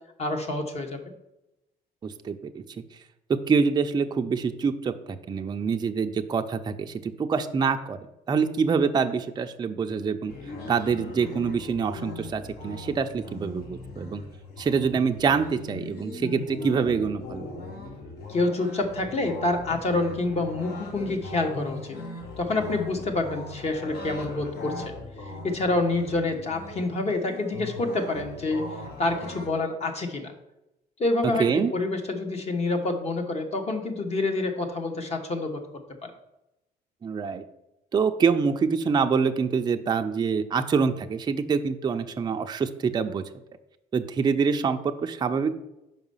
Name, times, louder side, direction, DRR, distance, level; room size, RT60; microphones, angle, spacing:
voice 1, 0.2-1.0 18.3-22.0 22.4-24.9 25.4-28.7 29.0-30.3 31.0-35.6 36.0-36.1, left 2 dB, 40° left, 5 dB, 1.1 m, -27 dB
voice 2, 2.0-2.6 3.5-8.0 8.3-10.3 10.7-14.2 14.6-17.5 31.4-31.7 37.0-37.4 37.9-43.2 43.9-45.5, right 5 dB, 25° right, 6 dB, 0.4 m, -25 dB
sound 1, 10.3-29.5, left 2 dB, 65° left, 1.5 m, -39 dB
5.4 x 4.9 x 5.5 m, 0.92 s
cardioid pair, 110°, 17 cm